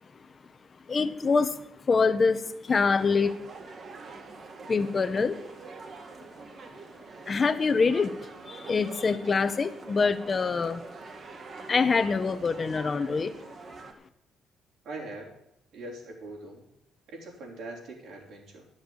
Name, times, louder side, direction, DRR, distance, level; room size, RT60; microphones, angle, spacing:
voice 1, 0.9-3.3 4.7-5.4 7.3-10.8 11.7-13.3, left 4 dB, 35° left, 10 dB, 0.9 m, -25 dB
sound 1, 2.7-13.9, right 4 dB, 50° right, 1.4 m, -45 dB
voice 2, 14.8-15.3 15.7-16.7 17.1-18.6, right 2 dB, 80° right, -1 dB, 3.8 m, -41 dB
11.0 x 6.5 x 8.5 m, 0.83 s
cardioid pair, 90°, 0 cm